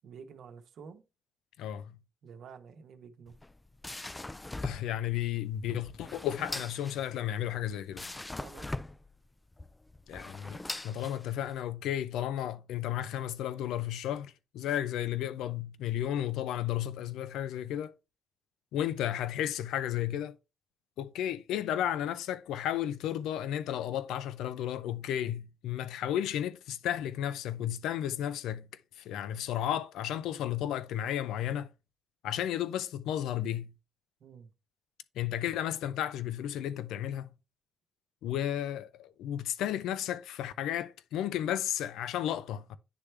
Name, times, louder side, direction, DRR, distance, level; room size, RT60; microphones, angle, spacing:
voice 1, 0.0-1.0 2.2-3.4 8.4-8.7 34.2-34.5, right 6 dB, 70° right, 0.9 m, -49 dB
voice 2, 1.6-1.9 4.6-8.2 10.1-17.9 18.7-20.3 21.0-28.7 29.0-31.7 32.2-33.7 35.2-37.3 38.2-42.8, left 11 dB, 85° left, 0.5 m, -33 dB
sound 1, 3.3-11.6, left 2 dB, 15° left, 0.3 m, -42 dB
9.9 x 3.3 x 3.3 m
cardioid pair, 90°, 0 cm